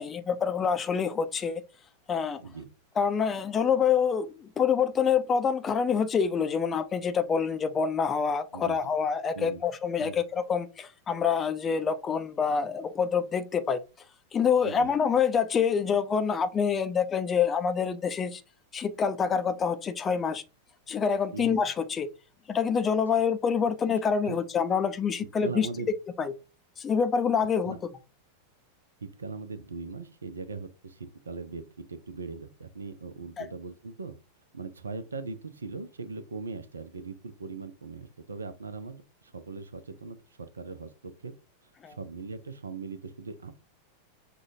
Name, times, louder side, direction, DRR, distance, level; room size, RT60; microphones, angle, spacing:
voice 1, 0.0-1.6 2.1-2.4 3.0-13.8 14.3-18.4 18.7-20.4 20.9-22.1 22.5-25.7 26.2-26.3 26.8-27.8 33.4-33.5 41.8-42.0, left 6 dB, 20° left, 0.5 m, -26 dB
voice 2, 14.6-14.9 21.3-21.6 24.2-24.4 25.4-25.9 27.6-27.8 29.0-34.1 34.5-41.3 41.9-43.5, right 4 dB, 75° right, 0.5 m, -40 dB
6.2 x 2.3 x 2.7 m
figure-of-eight pair, 90°, 0 cm